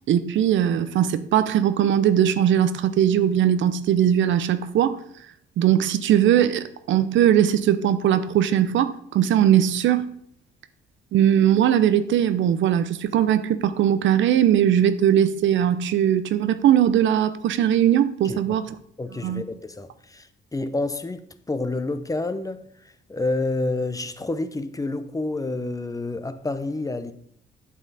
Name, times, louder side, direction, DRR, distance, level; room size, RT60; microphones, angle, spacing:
voice 1, 0.1-5.0 5.6-10.1 11.1-18.6 19.2-19.4, right 10 dB, 75° right, 0.6 m, -20 dB
voice 2, 19.0-27.1, left 2 dB, 15° left, 0.7 m, -29 dB
8.4 x 7.2 x 4.1 m
cardioid pair, 90°, 20 cm